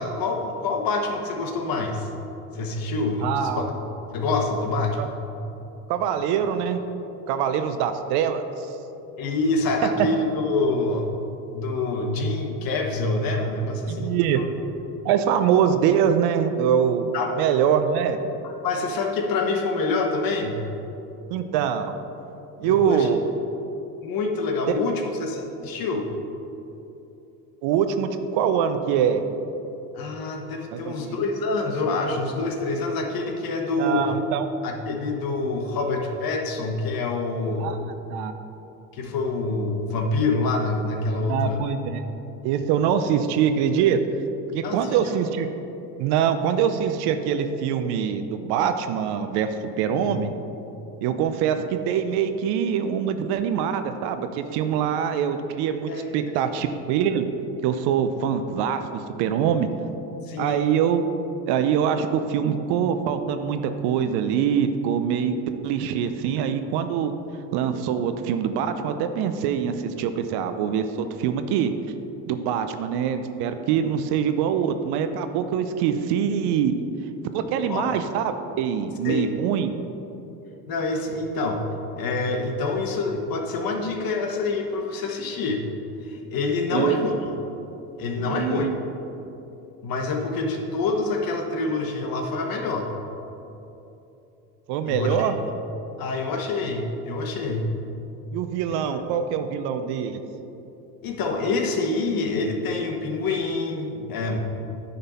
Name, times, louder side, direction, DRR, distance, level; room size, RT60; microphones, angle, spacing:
voice 1, 0.0-2.1 2.5-5.1 9.2-11.1 11.5-14.4 17.1-17.3 18.4-20.6 22.6-23.1 24.0-26.1 29.9-34.0 34.6-37.7 38.9-41.6 44.6-45.2 50.0-50.2 55.9-56.3 60.2-60.6 77.7-77.8 79.0-79.3 80.7-81.7 82.0-85.6 86.0-87.3 88.0-88.7 89.8-92.9 94.9-95.3 96.0-97.7 98.9-99.0 101.0-104.4, left 3 dB, 45° left, 3 dB, 1.3 m, -26 dB
voice 2, 3.2-3.7 5.9-6.8 7.3-8.7 13.9-14.4 15.0-18.2 21.3-21.9 22.6-23.2 24.7-24.8 27.6-29.2 30.7-31.1 33.8-34.5 37.6-38.3 41.1-42.0 42.4-44.0 44.5-45.5 46.0-50.3 51.0-57.3 57.6-59.7 60.4-61.1 61.5-65.3 65.6-67.1 67.5-71.7 72.3-76.7 77.3-79.7 86.7-87.0 88.2-88.7 94.7-95.3 98.3-100.2, right 8 dB, 55° right, 9 dB, 0.7 m, -24 dB
10.0 x 4.0 x 5.5 m, 2.9 s
hypercardioid pair, 80°, 48 cm